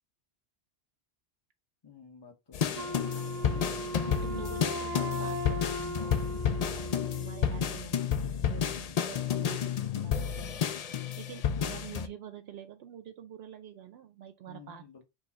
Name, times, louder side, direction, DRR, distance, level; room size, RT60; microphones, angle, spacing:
voice 1, 1.8-2.9 14.5-15.0, left 5 dB, 25° left, 0.9 m, -51 dB
sound 1, 2.5-12.1, left 8 dB, 60° left, 0.4 m, -31 dB
Wind instrument woodwind instrument, 2.8-7.7, right 1 dB, 40° right, 0.9 m, -38 dB
voice 2, 2.9-6.3 6.6-10.6 11.2-15.0, right 10 dB, 70° right, 0.8 m, -47 dB
4.8 x 2.3 x 4.0 m
omnidirectional pair, 1.1 m